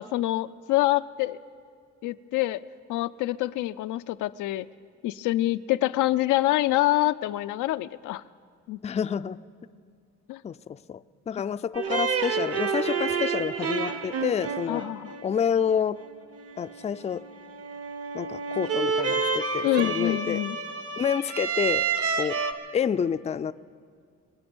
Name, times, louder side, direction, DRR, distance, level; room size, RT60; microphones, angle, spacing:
voice 1, 0.0-1.4 2.0-2.6 2.9-4.7 5.0-8.2 8.7-8.8 10.3-10.4 14.7-15.1 19.6-20.6, left 16 dB, 85° left, 13 dB, 0.5 m, -26 dB
voice 2, 8.8-9.4 10.4-11.0 11.3-14.9 15.2-16.0 16.6-17.2 18.1-20.4 21.0-21.9 22.2-22.4 22.7-23.5, left 7 dB, 25° left, 13 dB, 0.4 m, -28 dB
sound 1, 11.7-22.5, right 5 dB, 50° right, 1.1 m, -29 dB
26.0 x 8.7 x 6.2 m, 2.1 s
cardioid pair, 90°, 30 cm